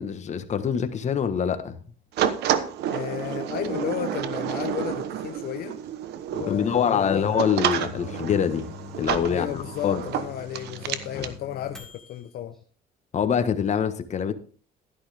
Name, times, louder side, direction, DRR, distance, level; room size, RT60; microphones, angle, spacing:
voice 1, 0.0-1.8 6.4-8.7 9.0-10.0 11.1-11.3 13.1-14.3, left 7 dB, 45° left, 1.4 m, -25 dB
sound 1, 2.2-11.3, right 10 dB, 80° right, 1.1 m, -30 dB
voice 2, 2.9-5.8 6.3-7.3 9.3-12.5, left 11 dB, 65° left, 0.9 m, -33 dB
Microwave oven, 7.7-12.3, left 5 dB, 5° left, 2.3 m, -43 dB
12.0 x 11.0 x 3.6 m
cardioid pair, 110°, 17 cm